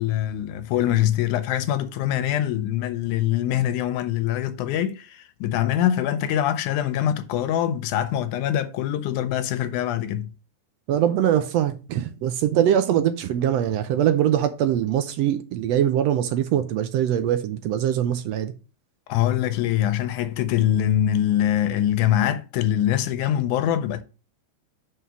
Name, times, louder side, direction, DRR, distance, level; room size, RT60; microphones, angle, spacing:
voice 1, 0.0-10.3 19.1-24.0, left 11 dB, 90° left, 2.2 m, -23 dB
voice 2, 10.9-18.5, right 10 dB, 75° right, 1.6 m, -22 dB
5.6 x 4.8 x 6.0 m
omnidirectional pair, 3.4 m